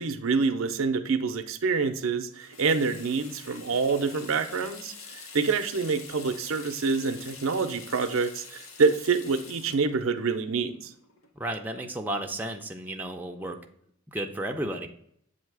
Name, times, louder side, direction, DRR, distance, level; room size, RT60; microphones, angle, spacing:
voice 1, 0.0-10.9, right 4 dB, 75° right, 8 dB, 0.6 m, -27 dB
Water tap faucet / Sink (filling or washing), 2.3-11.6, left 4 dB, 85° left, 1.0 m, -46 dB
voice 2, 11.4-13.6 14.1-14.9, right 1 dB, 10° right, 2 dB, 0.5 m, -33 dB
7.3 x 2.8 x 4.6 m, 0.69 s
head